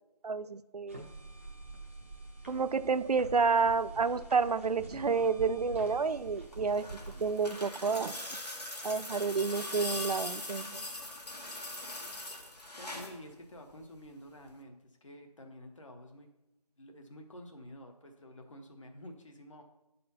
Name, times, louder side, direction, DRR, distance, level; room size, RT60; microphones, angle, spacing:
voice 1, 0.2-1.0 2.5-6.9 7.2-8.2 8.8-10.8, right 5 dB, 75° right, 14 dB, 0.5 m, -30 dB
sound 1, 0.9-7.5, right 2 dB, 20° right, 0.7 m, -47 dB
sound 2, 6.4-13.2 14.5-14.6, left 2 dB, 80° left, 1.8 m, -41 dB
voice 2, 12.7-14.8 15.0-16.3 16.8-19.6, equal, 50° left, 3 dB, 1.1 m, -49 dB
9.3 x 4.2 x 5.5 m, 0.93 s
figure-of-eight pair, 180°, 20 cm